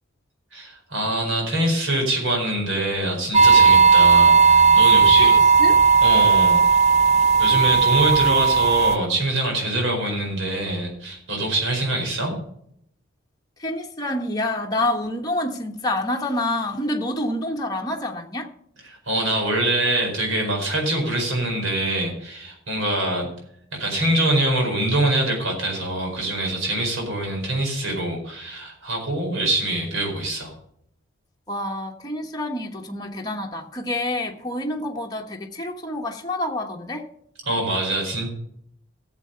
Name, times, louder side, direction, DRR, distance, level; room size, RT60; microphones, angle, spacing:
voice 1, 0.5-5.3 6.0-6.8 7.4-12.3 18.9-23.3 23.8-30.5 37.5-38.3, right 1 dB, 65° right, 4.8 m, -24 dB
sound 1, 3.3-9.0, right 5 dB, 30° right, 0.5 m, -15 dB
voice 2, 5.2-5.8 13.6-18.5 31.5-37.0, left 1 dB, 20° left, 1.2 m, -27 dB
14.0 x 7.6 x 5.7 m
head